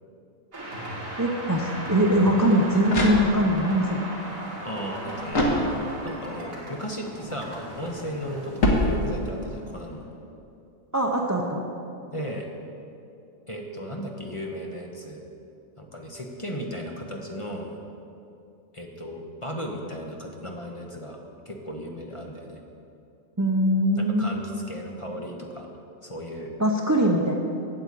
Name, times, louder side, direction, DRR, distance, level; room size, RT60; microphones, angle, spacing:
sound 1, 0.5-10.2, right 1 dB, 75° right, 2.5 m, -37 dB
voice 1, 1.2-4.0 10.9-11.6 23.4-24.4 26.6-27.4, equal, 20° right, 1 dB, 0.6 m, -22 dB
sound 2, 2.9-3.7 5.3-6.2 8.6-9.5, left 1 dB, 75° left, 2.0 m, -25 dB
voice 2, 4.6-5.6 6.0-10.0 12.1-12.5 13.5-15.2 15.8-17.7 18.7-21.2 21.4-22.6 24.0-25.7 26.0-26.5, equal, 25° left, 1 dB, 0.9 m, -35 dB
8.9 x 7.9 x 8.4 m, 2.6 s
omnidirectional pair, 1.4 m